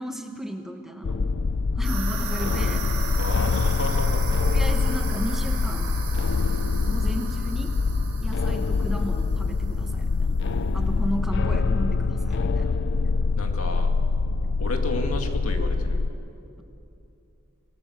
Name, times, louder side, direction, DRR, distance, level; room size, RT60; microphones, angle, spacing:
voice 1, 0.0-1.3 1.8-2.9 4.3-6.0 6.8-7.7 8.2-10.4 10.7-12.8, right 1 dB, ahead, 4 dB, 1.1 m, -34 dB
sound 1, 1.0-16.1, left 4 dB, 55° left, 0.4 m, -24 dB
sound 2, 1.8-10.0, right 5 dB, 70° right, 6.3 m, -37 dB
voice 2, 3.2-4.2 13.4-13.9 14.6-16.0, left 2 dB, 75° left, 4 dB, 2.1 m, -32 dB
26.5 x 17.5 x 6.5 m, 2.7 s
head